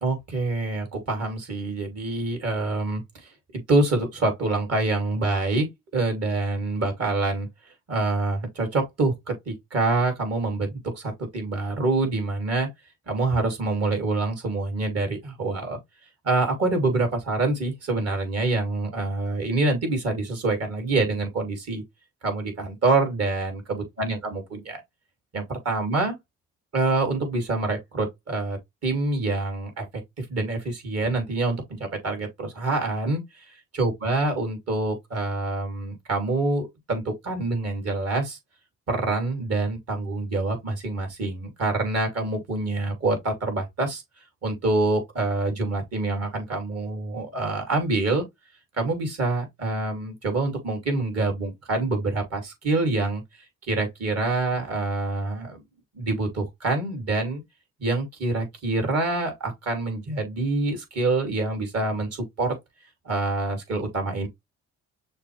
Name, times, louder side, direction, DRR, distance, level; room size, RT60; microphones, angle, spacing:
voice 1, 0.0-5.7 5.9-7.5 7.9-12.7 13.1-15.8 16.2-21.8 22.2-24.8 25.3-26.2 26.7-29.9 30.2-33.4 33.7-38.4 38.9-44.0 44.4-48.2 48.7-53.2 53.7-55.6 55.9-57.4 57.8-62.5 63.0-64.3, right 2 dB, 55° right, 2.7 m, -26 dB
6.5 x 2.5 x 3.1 m
cardioid pair, 90°, 30 cm